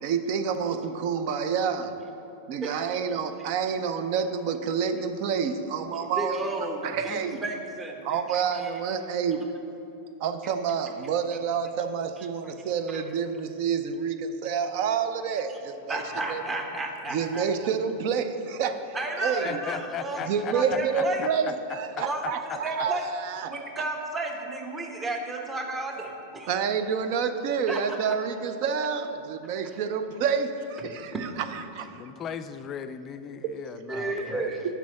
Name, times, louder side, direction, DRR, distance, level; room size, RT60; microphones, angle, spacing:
voice 1, 0.0-2.0 2.5-7.4 8.0-9.4 10.2-16.0 16.3-16.4 17.1-19.6 20.3-23.5 26.5-31.9 33.4-33.5, right 6 dB, 45° right, 9 dB, 0.5 m, -28 dB
voice 2, 6.0-8.7 12.4-12.5 12.9-13.0 15.9-17.4 18.9-21.2 22.0-22.2 22.5-23.1 23.5-26.6 27.7-27.8 31.1-31.2 33.9-34.7, right 2 dB, 15° right, 2 dB, 0.9 m, -33 dB
voice 3, 19.4-21.5 22.0-22.6 31.8-34.5, left 8 dB, 30° left, 11 dB, 0.4 m, -37 dB
6.1 x 5.6 x 7.1 m, 2.9 s
figure-of-eight pair, 90°, 0 cm